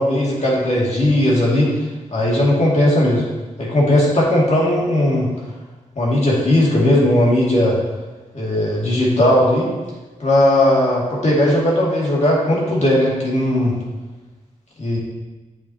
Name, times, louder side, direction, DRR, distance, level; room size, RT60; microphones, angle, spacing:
voice 1, 0.0-1.7 2.1-3.2 3.6-5.3 6.0-7.8 8.3-9.7 10.2-13.7 14.8-15.0, left 1 dB, 50° left, -5 dB, 2.3 m, -17 dB
8.8 x 5.7 x 2.9 m, 1.2 s
cardioid pair, 45°, 15 cm